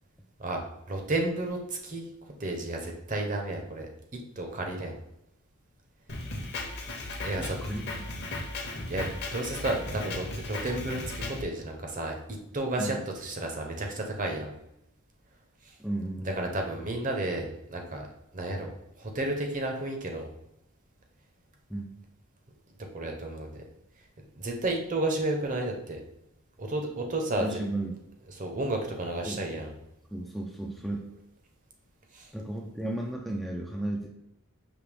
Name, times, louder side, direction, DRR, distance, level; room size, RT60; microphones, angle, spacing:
voice 1, 0.9-2.0 2.4-3.9 4.4-5.0 7.2-7.6 8.9-12.1 12.5-14.5 16.4-18.1 18.3-18.7 19.0-20.3 22.9-23.6 24.4-26.0 26.6-27.5 28.4-29.7 32.1-32.3, right 2 dB, 35° right, 2 dB, 0.7 m, -32 dB
Drum kit, 6.1-11.4, left 2 dB, 50° left, 0.9 m, -36 dB
voice 2, 7.4-7.8 12.8-13.0 15.8-16.5 21.7-22.0 27.3-27.9 29.3-29.5 30.1-31.1 32.3-34.1, right 1 dB, ahead, -2 dB, 0.3 m, -34 dB
5.2 x 2.9 x 3.3 m, 0.83 s
head